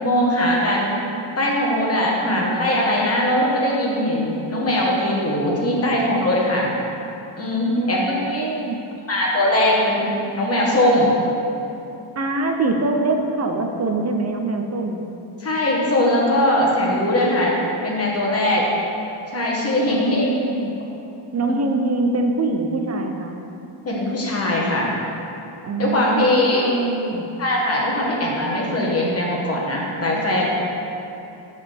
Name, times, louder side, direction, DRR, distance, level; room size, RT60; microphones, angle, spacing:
voice 1, 0.0-1.0 1.4-6.7 7.4-8.5 9.1-11.1 15.4-18.7 19.3-20.4 21.5-21.6 23.8-24.9 25.8-26.7 27.4-30.5, left 1 dB, 30° left, -3 dB, 1.3 m, -20 dB
voice 2, 7.7-8.9 12.2-15.0 19.9-20.7 21.3-23.4 25.6-27.3 30.1-30.2, right 2 dB, 35° right, 4 dB, 0.5 m, -24 dB
12.5 x 4.2 x 3.4 m, 2.8 s
wide cardioid pair, 160°, 50 cm